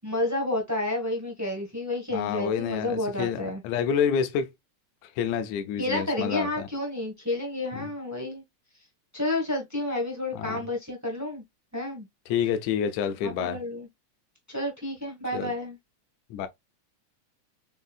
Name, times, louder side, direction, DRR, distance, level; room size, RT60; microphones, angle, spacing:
voice 1, 0.0-3.6 5.8-8.4 9.1-11.4 11.7-12.1 13.2-13.9 14.5-15.8, left 1 dB, 15° right, 0.5 m, -30 dB
voice 2, 2.1-4.5 5.0-6.7 7.7-7.9 10.4-10.7 12.3-13.6 15.3-15.5 16.3-16.5, left 8 dB, 75° left, 1.9 m, -28 dB
5.5 x 3.9 x 2.4 m
omnidirectional pair, 3.5 m